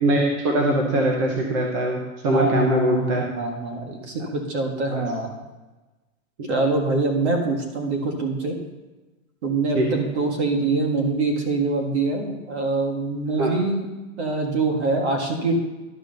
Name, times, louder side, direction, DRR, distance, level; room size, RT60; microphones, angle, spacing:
voice 1, 0.0-3.2 4.9-5.0 6.4-6.6 9.7-10.1 13.4-13.5, right 1 dB, 25° right, 0 dB, 0.7 m, -22 dB
voice 2, 2.3-5.3 6.5-8.6 9.4-13.9 14.2-15.5, right 3 dB, 50° right, 3 dB, 2.0 m, -24 dB
11.5 x 5.0 x 6.5 m, 1.2 s
supercardioid pair, 180°, 42 cm